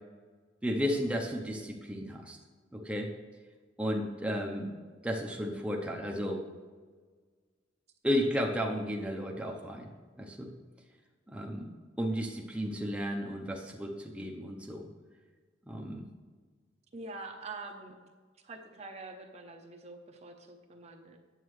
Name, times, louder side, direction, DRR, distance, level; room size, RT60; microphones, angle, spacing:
voice 1, 0.6-2.4 2.7-3.1 3.8-4.7 5.0-6.4 8.0-9.9 10.2-10.5 11.3-11.7 12.0-14.9 15.7-16.1, equal, 5° right, 0 dB, 0.7 m, -33 dB
voice 2, 16.9-17.9 18.4-21.2, right 3 dB, 35° right, 3 dB, 0.7 m, -45 dB
9.0 x 7.2 x 3.2 m, 1.5 s
head